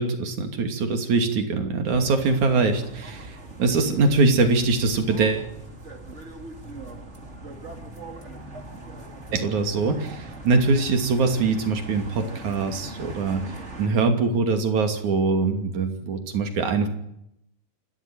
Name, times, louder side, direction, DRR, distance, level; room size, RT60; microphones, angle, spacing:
voice 1, 0.0-5.5 9.3-13.4 13.8-16.9, right 4 dB, 65° right, 5 dB, 4.1 m, -23 dB
sound 1, 1.8-13.9, right 2 dB, 25° right, 2.6 m, -40 dB
28.0 x 13.5 x 9.3 m, 0.78 s
omnidirectional pair, 3.6 m